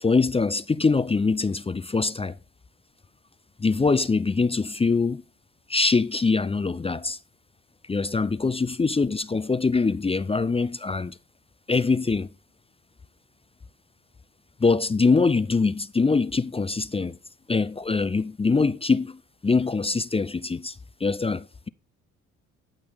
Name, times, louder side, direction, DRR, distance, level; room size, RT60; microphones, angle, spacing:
voice 1, 0.0-2.4 3.6-5.2 5.7-7.2 7.9-11.2 11.7-12.3 14.6-17.2 17.5-20.7 21.0-21.7, left 4 dB, 15° left, 0.5 m, -23 dB
13.0 x 6.1 x 3.6 m
hypercardioid pair, 55°, 37 cm